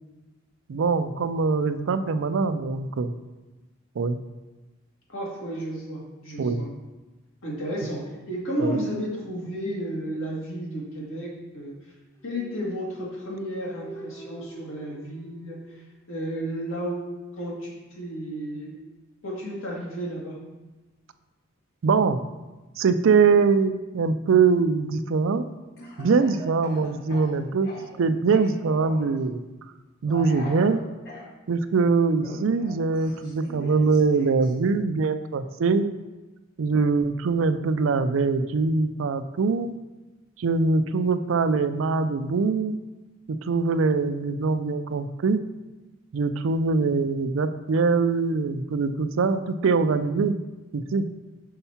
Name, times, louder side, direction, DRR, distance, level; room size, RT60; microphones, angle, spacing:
voice 1, 0.7-3.1 4.0-4.2 6.4-6.6 8.6-8.8 21.8-22.2 22.8-25.4 26.0-27.7 28.0-29.4 30.0-30.8 31.5-35.8 36.6-39.8 40.4-42.8 43.3-45.4 46.1-50.3 50.7-51.0, right 4 dB, 70° right, 11 dB, 0.4 m, -23 dB
voice 2, 5.1-6.7 7.4-11.9 12.2-15.8 16.1-18.8 19.2-20.4, equal, 75° left, -4 dB, 1.9 m, -33 dB
sound 1, 12.2-16.0, right 1 dB, 15° left, 0.6 m, -44 dB
Speech / Cough, 25.8-28.0 28.3-29.2 30.1-31.3 32.2-34.5, left 1 dB, 50° left, 1.6 m, -42 dB
5.7 x 4.5 x 5.6 m, 1.2 s
head